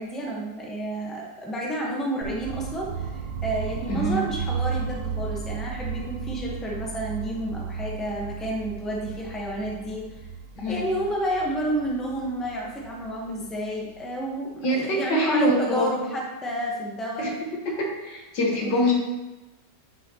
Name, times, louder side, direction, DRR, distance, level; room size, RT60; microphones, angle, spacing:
voice 1, 0.0-10.3 10.7-17.3 18.6-18.9, right 1 dB, ahead, -3 dB, 0.9 m, -30 dB
sound 1, 2.2-14.1, right 6 dB, 85° right, 1.3 m, -34 dB
voice 2, 3.9-4.2 10.6-10.8 14.6-15.9 17.2-17.3 17.8-18.9, equal, 85° left, -1 dB, 2.1 m, -24 dB
9.7 x 5.5 x 3.0 m, 1.1 s
omnidirectional pair, 1.9 m